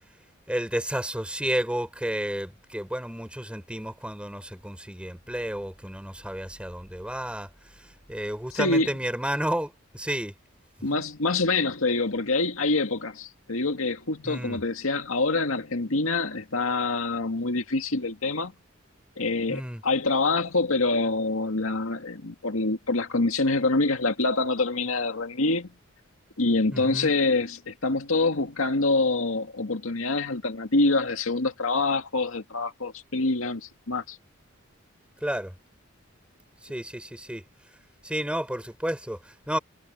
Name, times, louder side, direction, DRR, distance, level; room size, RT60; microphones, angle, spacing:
voice 1, 0.5-10.3 10.9-11.0 14.2-14.6 19.5-19.8 26.7-27.1 35.2-35.5 36.6-37.4 38.0-39.6, right 1 dB, 5° right, 4.9 m, -31 dB
voice 2, 8.5-8.9 10.8-18.5 19.2-25.7 26.4-34.2, left 3 dB, 85° left, 2.0 m, -26 dB
head